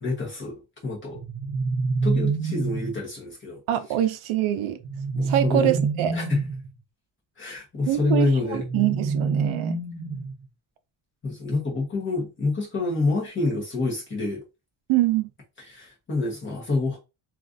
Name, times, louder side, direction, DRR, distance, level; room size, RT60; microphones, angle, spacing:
voice 1, 0.0-1.2 2.0-3.6 5.1-5.8 6.1-6.4 7.4-8.6 11.2-14.4 15.7-17.0, left 3 dB, 25° left, 1.1 m, -27 dB
sound 1, 1.1-3.0 4.8-6.7 8.5-10.4, right 4 dB, 35° right, 0.5 m, -27 dB
voice 2, 3.7-4.8 5.2-6.1 7.9-9.8 14.9-15.3, right 12 dB, 75° right, 0.6 m, -24 dB
3.1 x 2.5 x 2.5 m
cardioid pair, 175°, 49 cm